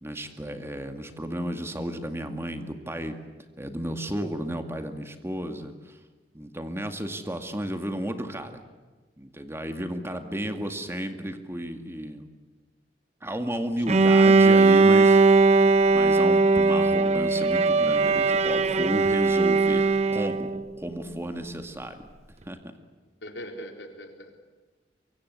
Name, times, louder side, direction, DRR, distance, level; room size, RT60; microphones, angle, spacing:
voice 1, 0.0-3.1 3.6-5.9 6.3-8.6 9.2-12.3 13.2-15.2 15.9-22.1 22.5-22.6, equal, 15° right, 7 dB, 2.1 m, -33 dB
voice 2, 10.2-10.7 13.9-14.2 23.2-24.4, equal, 80° left, 4 dB, 3.9 m, -42 dB
Bowed string instrument, 13.9-20.6, right 3 dB, 35° right, 0.9 m, -19 dB
24.0 x 24.0 x 8.3 m, 1.3 s
head